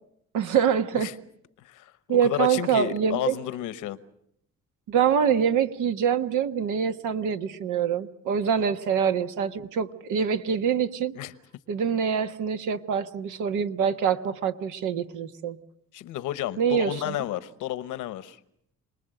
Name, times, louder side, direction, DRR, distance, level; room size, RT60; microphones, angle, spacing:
voice 1, 0.3-1.1 2.1-3.3 4.9-11.1 11.7-15.6 16.6-17.2, right 7 dB, 85° right, 9 dB, 1.3 m, -25 dB
voice 2, 1.6-1.9 2.2-4.0 8.6-8.7 11.1-11.3 15.9-18.4, left 13 dB, 90° left, 14 dB, 1.1 m, -31 dB
27.0 x 20.0 x 7.8 m, 0.72 s
cardioid pair, 90°, 30 cm